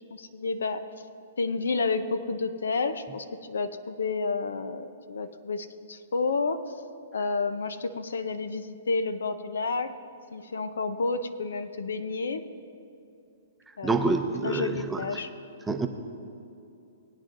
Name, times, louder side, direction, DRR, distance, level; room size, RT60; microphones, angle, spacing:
voice 1, 0.1-0.9 1.4-6.7 7.1-9.9 10.3-12.4 13.8-14.2 14.4-15.3, left 4 dB, 90° left, 11 dB, 0.6 m, -30 dB
voice 2, 13.8-15.0 15.7-15.9, right 3 dB, 10° right, 5 dB, 0.6 m, -27 dB
19.5 x 9.1 x 2.6 m, 2.7 s
hypercardioid pair, 140°, 0 cm